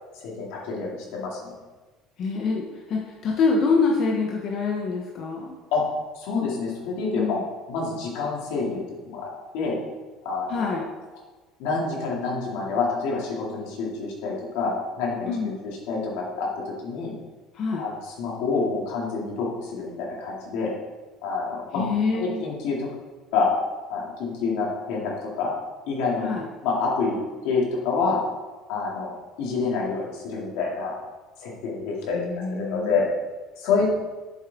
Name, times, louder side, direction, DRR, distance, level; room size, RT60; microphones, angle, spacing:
voice 1, 0.1-1.5 5.7-5.8 6.1-7.4 7.7-9.3 9.5-9.8 10.2-10.8 11.6-14.7 15.0-17.1 17.8-20.7 21.2-21.8 22.1-22.9 23.3-23.5 23.9-25.1 25.4-25.5 25.9-26.3 26.6-27.2 27.4-28.2 28.7-30.9 31.4-32.2 32.5-33.1 33.6-33.9, left 4 dB, 80° left, -3 dB, 2.6 m, -27 dB
voice 2, 2.2-5.5 7.2-7.5 10.5-10.8 15.3-15.6 17.5-17.8 21.7-22.4 26.2-26.4 32.1-32.9, left 4 dB, 45° left, -1 dB, 0.9 m, -25 dB
8.0 x 7.2 x 3.7 m, 1.3 s
cardioid pair, 150°, 0 cm